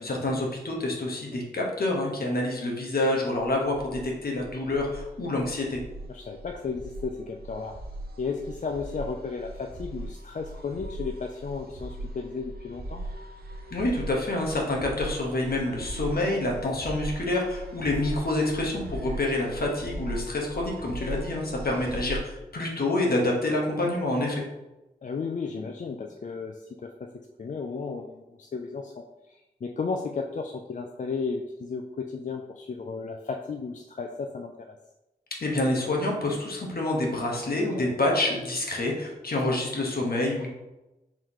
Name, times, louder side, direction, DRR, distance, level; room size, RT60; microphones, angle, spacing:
voice 1, 0.0-5.8 13.7-24.4 35.4-40.5, left 2 dB, 65° left, -1 dB, 1.2 m, -27 dB
sound 1, 3.4-22.2, right 1 dB, 65° right, 0.8 m, -39 dB
voice 2, 6.1-7.7 8.2-13.0 16.6-16.8 21.1-21.3 25.0-27.1 27.4-34.7 37.7-37.9, left 4 dB, 45° left, 3 dB, 0.4 m, -34 dB
4.7 x 3.6 x 3.0 m, 1.0 s
cardioid pair, 45°, 17 cm